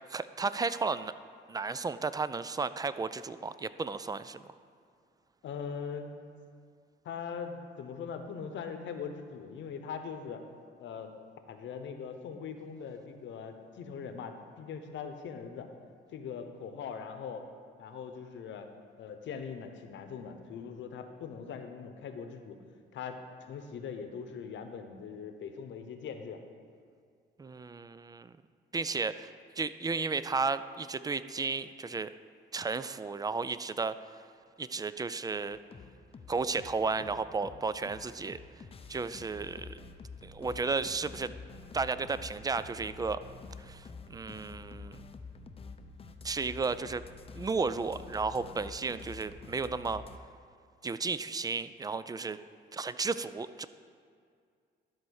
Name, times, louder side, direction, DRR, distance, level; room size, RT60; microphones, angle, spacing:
voice 1, 0.1-1.1 1.5-4.4 27.4-28.3 28.7-29.3 29.6-32.1 32.5-34.0 34.6-35.6 36.3-38.4 38.9-39.8 40.2-41.3 41.7-43.2 43.6-45.0 46.2-47.0 47.4-50.0 50.8-52.4 52.7-53.7, right 4 dB, 20° right, 14 dB, 0.3 m, -33 dB
voice 2, 5.4-6.1 7.0-10.4 10.8-11.1 11.5-15.7 16.1-17.4 17.8-18.7 19.0-22.6 22.9-26.4, left 6 dB, 70° left, 7 dB, 0.9 m, -41 dB
sound 1, 35.5-50.2, left 4 dB, 30° left, 0.6 m, -48 dB
12.0 x 4.4 x 6.4 m, 2.2 s
cardioid pair, 90°, 20 cm